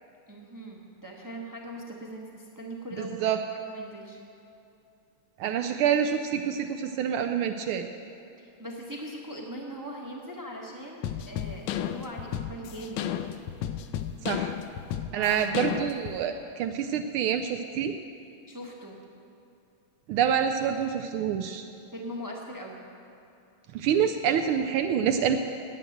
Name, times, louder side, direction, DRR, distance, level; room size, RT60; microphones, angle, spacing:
voice 1, 0.3-4.2 8.4-13.0 15.1-15.4 18.5-19.0 21.9-22.8, equal, 15° right, -2 dB, 0.6 m, -40 dB
voice 2, 3.0-3.4 5.4-7.9 14.2-14.5 15.1-18.0 20.1-21.7 23.7-25.4, right 8 dB, 80° right, 6 dB, 1.4 m, -27 dB
sound 1, 11.0-16.2, left 10 dB, 75° left, 1.2 m, -33 dB
10.0 x 9.0 x 7.8 m, 2.7 s
omnidirectional pair, 2.4 m